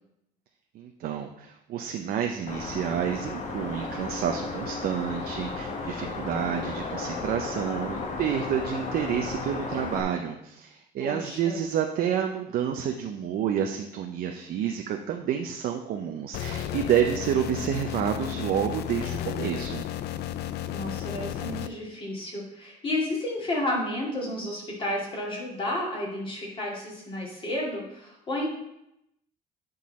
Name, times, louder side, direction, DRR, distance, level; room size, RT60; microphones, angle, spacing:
voice 1, 0.7-19.8, right 9 dB, 65° right, 4 dB, 0.6 m, -29 dB
sound 1, 2.5-10.0, left 3 dB, 45° left, 1.1 m, -34 dB
voice 2, 11.0-11.6 20.7-28.5, left 1 dB, 30° left, -3 dB, 2.6 m, -31 dB
sound 2, 16.3-21.7, left 11 dB, 75° left, 0.4 m, -33 dB
10.0 x 3.9 x 4.2 m, 0.83 s
cardioid pair, 110°, 17 cm